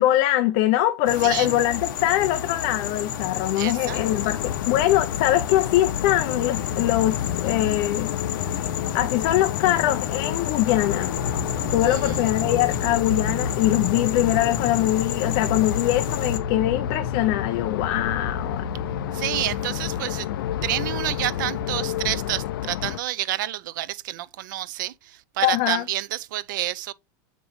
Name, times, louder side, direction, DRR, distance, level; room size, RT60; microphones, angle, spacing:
voice 1, 0.0-4.4 4.7-8.1 8.9-11.1 11.7-18.6 25.4-25.8, left 14 dB, 40° left, 0.6 m, -22 dB
sound 1, 1.0-16.4, left 7 dB, 65° left, 1.3 m, -31 dB
voice 2, 1.2-1.5 3.6-4.0 11.8-12.3 19.1-20.3 20.6-26.9, right 15 dB, 65° right, 0.6 m, -29 dB
sound 2, 3.9-23.0, left 12 dB, 85° left, 0.4 m, -30 dB
sound 3, 11.1-22.4, left 3 dB, ahead, 2.2 m, -35 dB
7.5 x 5.2 x 3.1 m
supercardioid pair, 175°, 11 cm